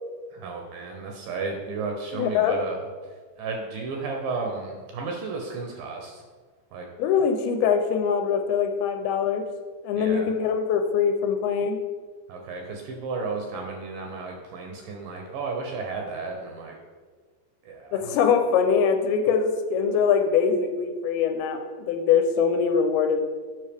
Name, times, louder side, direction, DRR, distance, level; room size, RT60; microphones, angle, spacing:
voice 1, 0.3-2.8 3.4-6.2 6.7-6.9 10.0-10.3 12.3-16.8 17.6-18.1, right 4 dB, 75° right, 1 dB, 2.1 m, -33 dB
voice 2, 2.1-2.6 7.0-9.4 9.8-11.8 17.9-23.3, left 6 dB, 90° left, 5 dB, 2.5 m, -23 dB
7.7 x 5.4 x 3.4 m, 1.5 s
omnidirectional pair, 4.4 m